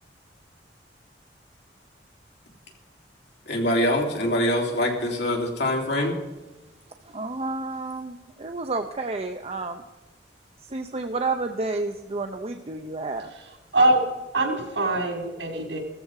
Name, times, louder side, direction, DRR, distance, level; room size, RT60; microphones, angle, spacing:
voice 1, 3.5-6.1, left 1 dB, 70° left, 0 dB, 3.3 m, -24 dB
voice 2, 7.0-9.8 10.6-13.3, right 3 dB, 35° right, 5 dB, 0.7 m, -30 dB
voice 3, 13.7-14.1 14.3-15.8, right 2 dB, 85° right, 1 dB, 4.6 m, -22 dB
16.0 x 14.0 x 4.8 m, 1.1 s
head